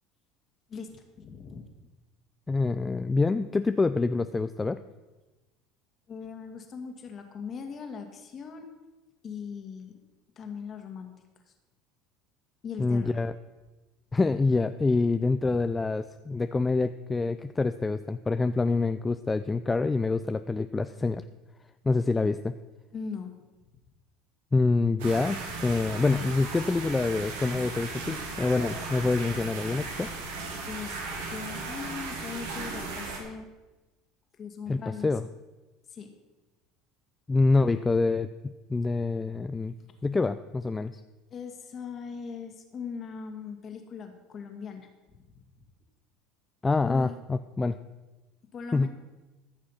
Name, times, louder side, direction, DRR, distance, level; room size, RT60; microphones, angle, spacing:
voice 1, 0.7-1.7 6.1-8.7 9.2-10.0 10.4-11.1 12.6-13.1 15.4-15.6 22.9-23.3 30.6-31.0 31.3-33.5 34.4-35.1 35.9-36.1 41.3-44.9 46.9-47.2 48.5-48.9, left 6 dB, 40° left, 5 dB, 2.0 m, -40 dB
voice 2, 2.5-4.8 12.8-13.3 14.1-21.2 21.8-22.5 24.5-30.1 34.7-35.3 37.3-39.7 40.0-41.0 46.6-47.8 48.7-48.9, left 3 dB, 20° left, 10 dB, 0.4 m, -26 dB
sound 1, 25.0-33.2, right 3 dB, 80° right, 2.5 m, -36 dB
14.5 x 6.3 x 5.8 m, 1.1 s
hypercardioid pair, 90°, 0 cm